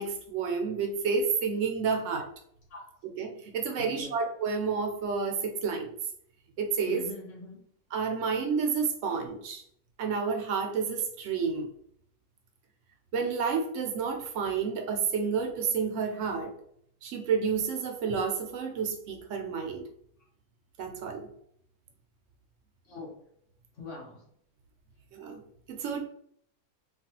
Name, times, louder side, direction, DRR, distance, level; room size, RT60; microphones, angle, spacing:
voice 1, 0.0-2.3 3.2-5.9 6.6-7.0 7.9-9.6 10.0-11.7 13.1-16.5 17.0-19.8 20.8-21.3 25.1-25.4 25.7-26.0, right 5 dB, 65° right, 3 dB, 0.8 m, -30 dB
voice 2, 3.7-4.2 6.9-7.6 22.8-23.1 23.7-24.2, left 3 dB, 60° left, -3 dB, 1.4 m, -43 dB
3.2 x 2.3 x 2.8 m, 0.67 s
omnidirectional pair, 1.5 m